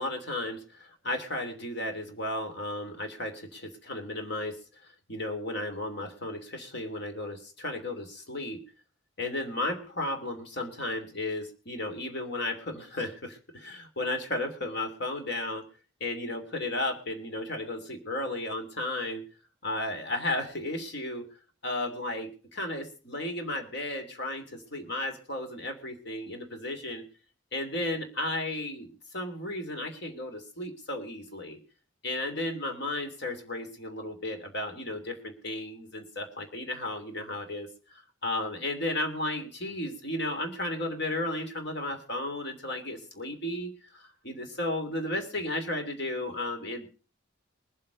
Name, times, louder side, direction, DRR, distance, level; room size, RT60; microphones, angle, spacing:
voice 1, 0.0-8.6 9.2-15.7 16.0-19.2 19.6-21.2 21.6-27.0 27.5-31.6 32.0-46.9, left 1 dB, 55° left, 5 dB, 3.0 m, -34 dB
23.0 x 7.8 x 5.1 m, 0.37 s
head